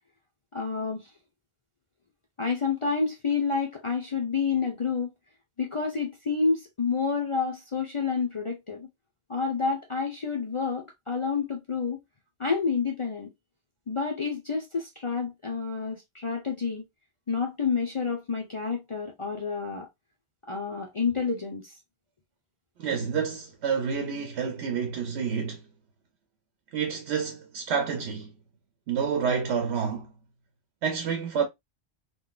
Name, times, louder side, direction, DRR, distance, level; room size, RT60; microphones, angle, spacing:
voice 1, 0.5-1.1 2.4-5.1 5.6-8.9 9.3-12.0 12.4-13.3 13.9-16.8 17.3-19.9 20.5-21.8, left 5 dB, 40° left, 0.5 m, -29 dB
voice 2, 22.8-25.6 26.7-28.3 28.9-30.1 30.8-31.4, right 6 dB, 80° right, 0.9 m, -29 dB
3.7 x 2.3 x 2.3 m
omnidirectional pair, 1.1 m